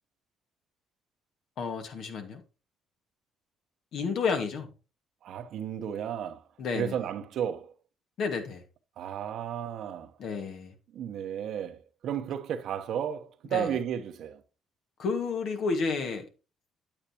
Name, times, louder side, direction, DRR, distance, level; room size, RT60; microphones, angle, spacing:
voice 1, 1.6-2.4 3.9-4.7 6.6-7.0 8.2-8.6 10.2-10.7 13.5-13.7 15.0-16.3, left 4 dB, 65° left, 1.8 m, -31 dB
voice 2, 5.2-6.4 6.7-7.7 9.0-10.1 10.9-14.4, right 9 dB, 65° right, 1.0 m, -33 dB
8.8 x 8.6 x 3.0 m
supercardioid pair, 75°, 0 cm